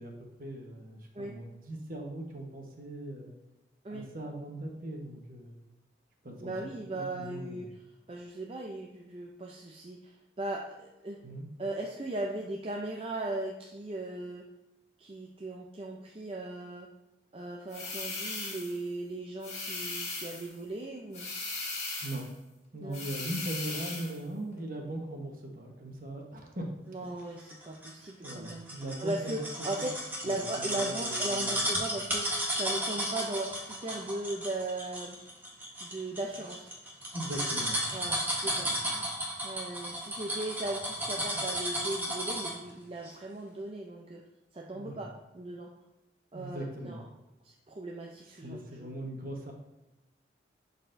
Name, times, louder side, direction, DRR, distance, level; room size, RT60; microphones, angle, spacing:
voice 1, 0.0-3.3 3.9-5.7 6.2-7.6 11.2-11.4 22.0-22.3 22.7-26.7 27.2-27.4 28.2-29.5 30.2-31.7 37.1-38.2 38.5-39.1 44.7-45.1 46.3-47.1 48.3-49.5, right 1 dB, 50° right, 1 dB, 1.2 m, -40 dB
voice 2, 6.4-7.7 8.1-11.2 11.6-14.5 15.0-16.9 17.3-21.3 22.8-23.0 26.9-28.7 29.0-29.9 30.2-35.2 35.8-36.7 37.9-38.7 39.4-44.2 44.5-45.7 46.3-47.0 47.4-48.9, right 2 dB, 30° right, 0 dB, 0.5 m, -38 dB
sound 1, 17.7-18.8 19.4-20.5 21.1-22.3 22.9-24.2, left 3 dB, 40° left, 2.0 m, -38 dB
sound 2, 27.5-42.7 43.0-43.1, equal, 10° right, 1.1 m, -34 dB
11.0 x 4.1 x 2.6 m, 0.99 s
head